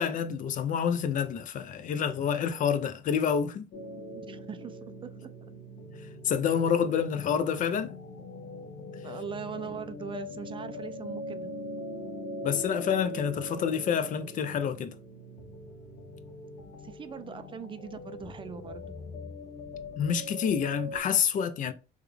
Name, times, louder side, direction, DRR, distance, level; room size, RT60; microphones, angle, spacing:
voice 1, 0.0-3.7 6.2-7.9 12.4-14.9 20.0-21.7, left 7 dB, 50° left, 0.5 m, -28 dB
sound 1, 3.7-21.0, left 1 dB, 75° left, 0.9 m, -42 dB
voice 2, 4.1-5.3 9.0-11.5 16.7-19.0, right 7 dB, 30° right, 0.3 m, -41 dB
3.5 x 2.3 x 3.3 m
cardioid pair, 110°, 17 cm